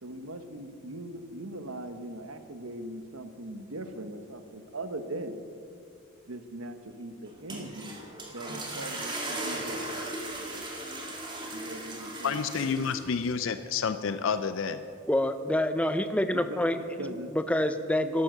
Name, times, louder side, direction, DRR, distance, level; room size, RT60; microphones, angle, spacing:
voice 1, 0.0-5.4 6.3-8.0 8.3-9.8 11.5-12.7 16.3-17.3, right 1 dB, 75° right, 9 dB, 1.1 m, -40 dB
sound 1, 7.3-13.3, right 1 dB, 20° right, 2.0 m, -37 dB
voice 2, 12.2-14.8, left 6 dB, 65° left, 11 dB, 0.5 m, -29 dB
voice 3, 15.1-16.8 17.3-18.2, left 1 dB, 5° left, 10 dB, 0.5 m, -26 dB
12.0 x 11.5 x 6.7 m, 2.3 s
head